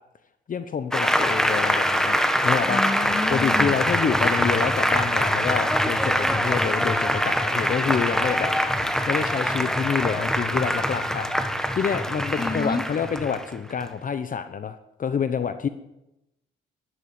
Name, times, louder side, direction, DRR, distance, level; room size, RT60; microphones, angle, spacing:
voice 1, 0.5-2.9 3.3-11.3 11.7-15.7, left 7 dB, 45° left, 10 dB, 0.9 m, -28 dB
Applause, 0.9-13.9, equal, 5° left, 1.5 m, -23 dB
voice 2, 2.7-3.8 12.4-12.8, left 3 dB, 20° left, 12 dB, 1.2 m, -29 dB
12.5 x 11.5 x 9.5 m, 0.92 s
cardioid pair, 90°, 20 cm